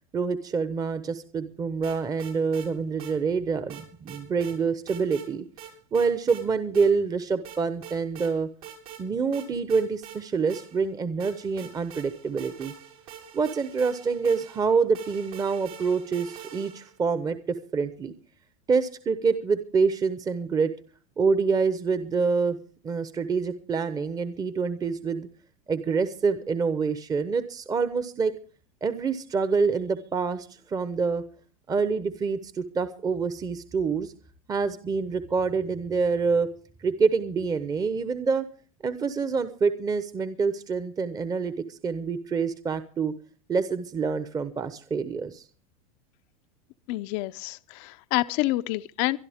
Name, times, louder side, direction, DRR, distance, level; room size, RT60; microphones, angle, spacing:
voice 1, 0.1-5.4 5.9-8.5 9.0-12.7 13.3-18.1 18.7-20.7 21.2-22.6 22.8-25.3 25.7-28.3 28.8-31.2 31.7-34.1 34.5-36.5 36.8-38.5 38.8-43.1 43.5-45.4, right 5 dB, 20° right, 0.9 m, -26 dB
sound 1, 1.8-2.7 3.0-3.1 3.7-4.6 4.9-5.3 5.6-6.4 6.7-6.9 7.4-8.3 8.6-9.0 9.3-10.9 11.2-17.0, right 9 dB, 75° right, 6.1 m, -44 dB
voice 2, 46.9-49.2, left 18 dB, 55° left, 0.6 m, -28 dB
23.5 x 12.0 x 3.6 m
supercardioid pair, 120°, 19 cm